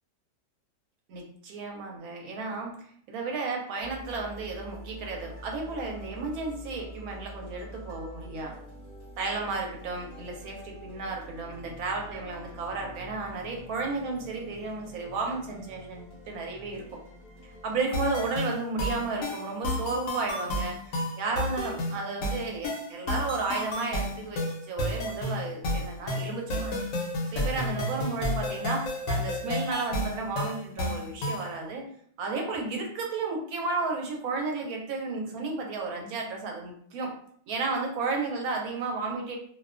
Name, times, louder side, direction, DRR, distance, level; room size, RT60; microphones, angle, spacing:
voice 1, 1.1-2.8 3.1-8.6 9.2-17.0 17.6-26.7 27.3-31.8 32.2-37.1 37.5-39.4, right 3 dB, 70° right, 1 dB, 1.0 m, -33 dB
sound 1, 3.8-17.8, equal, 25° right, 0.5 m, -46 dB
sound 2, 17.9-31.5, left 1 dB, 70° left, 0.8 m, -31 dB
2.5 x 2.2 x 2.4 m, 0.62 s
omnidirectional pair, 1.7 m